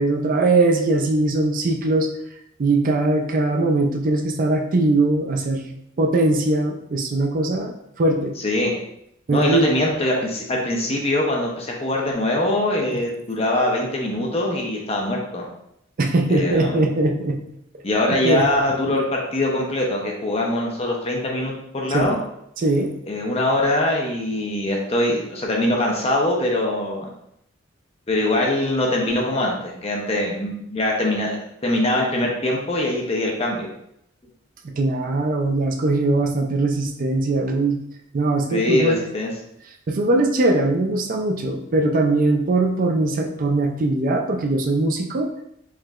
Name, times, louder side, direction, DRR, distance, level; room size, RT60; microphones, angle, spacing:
voice 1, 0.0-2.1 2.6-8.4 9.3-9.7 16.0-17.4 18.2-18.5 18.9-19.0 21.9-22.1 22.6-22.9 34.6-37.8 38.1-39.0 39.9-45.3, right 2 dB, 45° right, 3 dB, 0.4 m, -21 dB
voice 2, 9.3-15.5 16.3-16.8 17.8-22.2 23.1-27.1 28.1-33.7 38.5-39.3, left 1 dB, 30° left, -1 dB, 0.6 m, -23 dB
4.7 x 3.1 x 2.3 m, 0.76 s
head